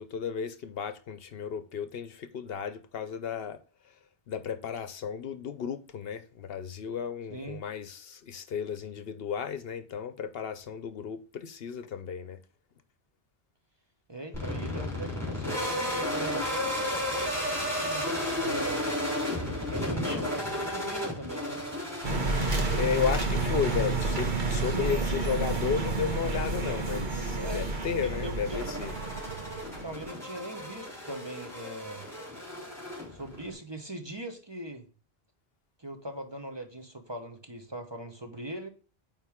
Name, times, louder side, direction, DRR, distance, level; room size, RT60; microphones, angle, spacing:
voice 1, 0.0-3.6 4.3-12.4 22.7-28.9, left 7 dB, 70° left, 0.9 m, -33 dB
voice 2, 14.1-18.9 19.7-21.6 24.6-25.1 27.4-27.7 28.0-28.6 29.8-32.1 33.1-34.9 35.8-38.7, right 1 dB, 25° right, 1.0 m, -40 dB
sound 1, 14.3-33.5, left 1 dB, ahead, 3.5 m, -34 dB
sound 2, 22.0-30.1, right 3 dB, 50° right, 1.2 m, -30 dB
9.1 x 3.7 x 3.6 m
omnidirectional pair, 1.1 m